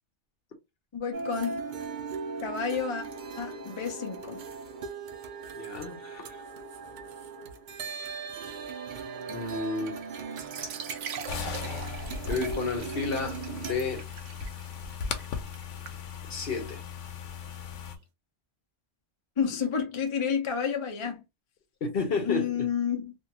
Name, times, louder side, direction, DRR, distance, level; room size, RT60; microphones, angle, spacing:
voice 1, 0.9-1.6 2.4-3.1 3.4-4.4 19.4-21.2 22.2-23.1, left 7 dB, 35° left, 0.6 m, -30 dB
sound 1, 1.1-13.7, right 5 dB, 55° right, 0.5 m, -39 dB
voice 2, 5.6-6.4 9.3-10.0 12.3-14.1 16.3-16.8 21.8-22.7, left 4 dB, 55° left, 1.0 m, -31 dB
sound 2, 10.3-17.9, right 7 dB, 90° right, 1.0 m, -43 dB
sound 3, 11.3-18.0, left 6 dB, 85° left, 0.9 m, -37 dB
2.6 x 2.4 x 2.9 m
omnidirectional pair, 1.2 m